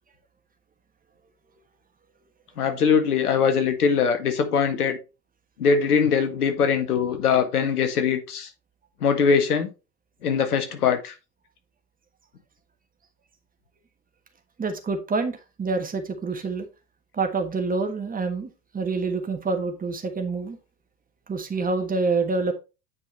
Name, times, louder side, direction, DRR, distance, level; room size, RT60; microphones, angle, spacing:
voice 1, 2.6-5.0 5.6-8.5 9.0-9.7 10.2-11.1, left 6 dB, 70° left, 1.8 m, -22 dB
voice 2, 14.6-16.7 17.1-20.6 21.3-22.5, right 4 dB, 20° right, 1.5 m, -27 dB
9.3 x 5.3 x 3.2 m
figure-of-eight pair, 80°, 47 cm